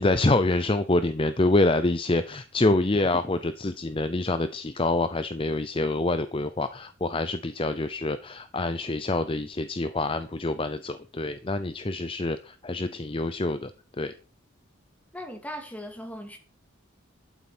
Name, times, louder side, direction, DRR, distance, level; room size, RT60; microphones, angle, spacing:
voice 1, 0.0-14.1, left 2 dB, 25° left, 0.6 m, -26 dB
voice 2, 15.1-16.4, equal, 5° left, 2.2 m, -38 dB
12.0 x 7.6 x 6.1 m
head